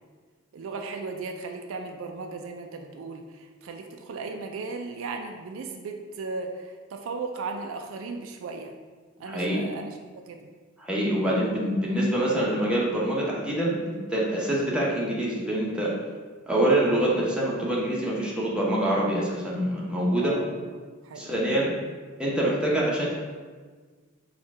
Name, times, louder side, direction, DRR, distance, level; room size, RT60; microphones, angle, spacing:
voice 1, 0.5-8.7 9.2-10.0 10.3-10.5 20.2-21.4, right 4 dB, 70° right, 4 dB, 0.4 m, -36 dB
voice 2, 9.2-9.6 10.8-15.9 16.5-20.3 21.2-21.7 22.2-23.1, right 1 dB, 5° right, -5 dB, 0.9 m, -25 dB
4.3 x 2.4 x 4.7 m, 1.5 s
head